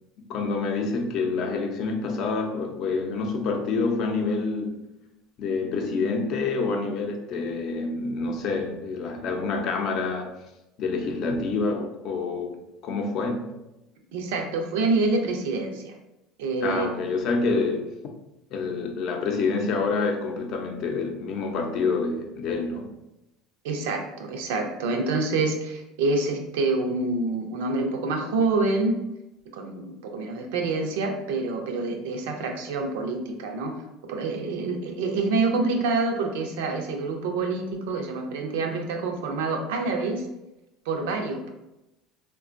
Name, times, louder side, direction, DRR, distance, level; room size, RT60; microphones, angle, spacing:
voice 1, 0.3-4.8 5.4-10.3 10.8-12.6 12.8-13.5 16.6-17.9 18.5-22.9, left 4 dB, 55° left, 3 dB, 0.5 m, -27 dB
voice 2, 14.1-16.0 16.4-16.9 23.6-29.0 29.5-33.8 34.1-40.3 40.9-41.5, right 3 dB, 85° right, 4 dB, 0.5 m, -27 dB
3.5 x 2.2 x 2.5 m, 0.93 s
supercardioid pair, 100°, 0 cm